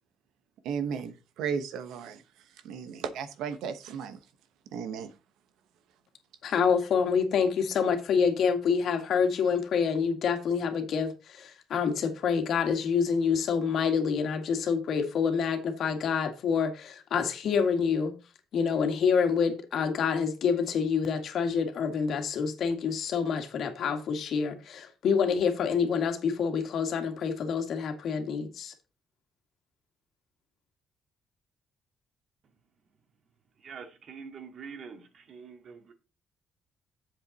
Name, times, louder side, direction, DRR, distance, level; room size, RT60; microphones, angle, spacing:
voice 1, 0.6-2.2 2.5-4.2 4.7-5.2, right 7 dB, 90° right, 1.0 m, -35 dB
voice 2, 6.4-18.1 18.5-28.7, left 6 dB, 70° left, 2.0 m, -27 dB
voice 3, 33.6-35.9, right 6 dB, 60° right, 2.1 m, -45 dB
8.2 x 7.5 x 4.1 m
cardioid pair, 90°, 0 cm